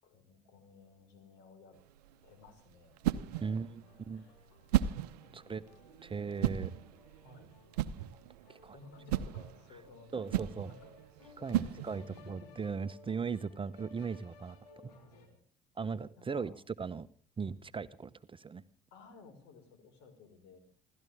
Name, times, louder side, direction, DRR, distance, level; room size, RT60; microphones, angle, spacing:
voice 1, 0.0-1.8 2.2-3.6 4.1-4.4 5.2-5.9 7.2-7.5 8.3-8.4 8.7-11.0 11.4-12.5 14.9-15.4 16.2-16.6 18.9-20.6, left 4 dB, 65° left, 8 dB, 5.1 m, -57 dB
sound 1, 1.7-12.3, right 12 dB, 75° right, 0.8 m, -36 dB
sound 2, 3.2-15.3, left 4 dB, 80° left, 3.3 m, -60 dB
voice 2, 3.4-4.2 5.3-5.6 6.0-6.7 8.5-8.8 10.1-10.7 11.4-14.6 14.8-14.9 15.8-17.1 17.4-18.6, right 5 dB, 25° right, 13 dB, 0.9 m, -38 dB
28.0 x 13.5 x 3.5 m, 0.42 s
figure-of-eight pair, 55°, 20 cm